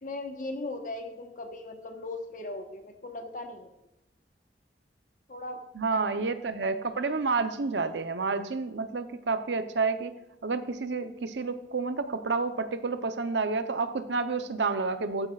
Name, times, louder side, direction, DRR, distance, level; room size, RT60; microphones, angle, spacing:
voice 1, 0.0-3.7 5.3-5.6 5.9-6.0, left 2 dB, 50° left, 5 dB, 1.2 m, -38 dB
voice 2, 5.8-10.1 10.4-15.3, right 4 dB, 85° right, 10 dB, 0.7 m, -29 dB
14.5 x 8.9 x 2.4 m, 0.90 s
head